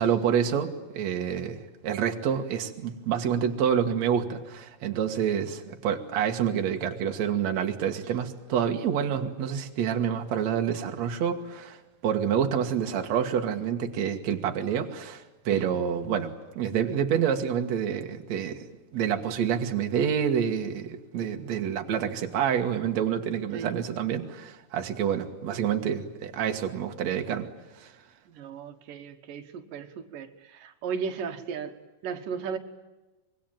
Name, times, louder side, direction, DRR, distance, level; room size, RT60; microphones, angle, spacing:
voice 1, 0.0-18.7 18.9-27.5 27.7-27.9, right 8 dB, 60° right, 4 dB, 2.7 m, -28 dB
voice 2, 28.3-31.7 32.0-32.6, right 6 dB, 90° right, 7 dB, 3.0 m, -35 dB
25.0 x 23.0 x 9.0 m, 1.1 s
omnidirectional pair, 3.7 m